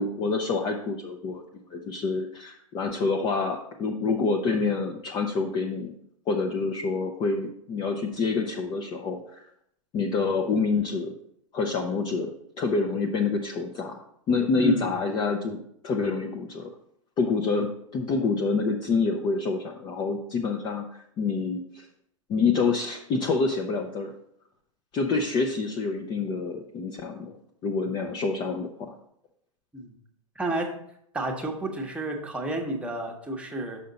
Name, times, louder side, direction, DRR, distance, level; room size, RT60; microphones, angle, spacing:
voice 1, 0.0-1.4 1.7-5.9 6.3-9.4 9.9-11.1 11.5-16.7 17.2-21.9 22.3-24.1 24.9-27.4 27.6-28.9, left 4 dB, 25° left, 2 dB, 0.6 m, -27 dB
voice 2, 14.5-14.9 29.7-29.9 30.4-30.7 31.1-33.8, right 1 dB, 5° right, 1 dB, 1.1 m, -30 dB
6.3 x 5.7 x 4.0 m, 0.71 s
hypercardioid pair, 110°, 17 cm